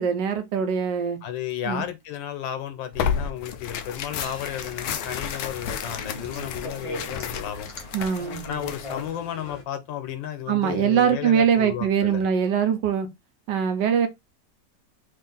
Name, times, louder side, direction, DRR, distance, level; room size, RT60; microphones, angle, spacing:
voice 1, 0.0-1.2 1.6-1.9 7.9-8.4 10.5-13.1 13.5-14.1, right 7 dB, 75° right, 1.4 m, -22 dB
voice 2, 1.2-7.7 8.4-12.2, left 10 dB, 90° left, 1.4 m, -33 dB
Tearing, 2.9-9.1, left 7 dB, 70° left, 0.9 m, -32 dB
sound 1, 4.2-9.6, left 1 dB, 55° left, 0.3 m, -40 dB
3.5 x 2.5 x 3.8 m
omnidirectional pair, 2.0 m